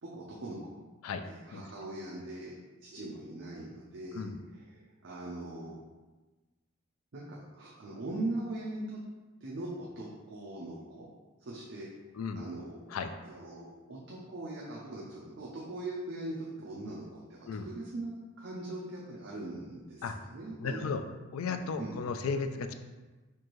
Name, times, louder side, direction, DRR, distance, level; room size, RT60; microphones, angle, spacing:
voice 1, 0.0-0.8 1.3-4.3 4.7-5.8 7.1-9.0 9.4-11.1 11.4-12.8 13.2-18.1 18.4-20.9 21.8-21.9, right 2 dB, 60° right, -4 dB, 0.5 m, -41 dB
voice 2, 20.6-21.0 21.3-22.7, left 5 dB, 90° left, 8 dB, 0.3 m, -34 dB
4.5 x 2.6 x 3.0 m, 1.2 s
head